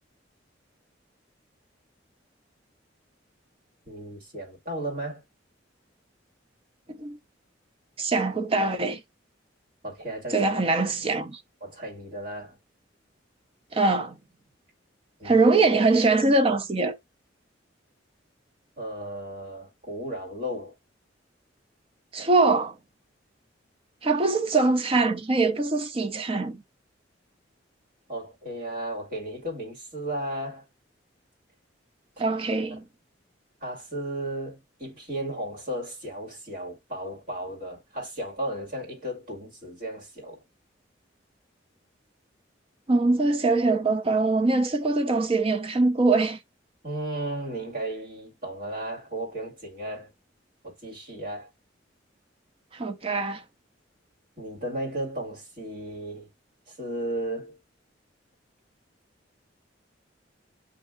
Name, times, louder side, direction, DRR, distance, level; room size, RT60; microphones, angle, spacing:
voice 1, 3.9-5.2 9.8-10.5 11.6-12.6 15.2-15.4 18.8-20.7 28.1-30.6 33.6-40.4 46.8-50.1 50.6-51.5 54.4-56.3 56.7-57.6, right 1 dB, 45° right, 2.0 m, -34 dB
voice 2, 8.0-9.0 10.3-11.4 13.7-14.2 15.2-17.0 22.1-22.7 24.0-26.6 32.2-32.8 42.9-46.4 52.7-53.4, right 3 dB, 30° right, 0.6 m, -23 dB
8.2 x 2.7 x 2.3 m
head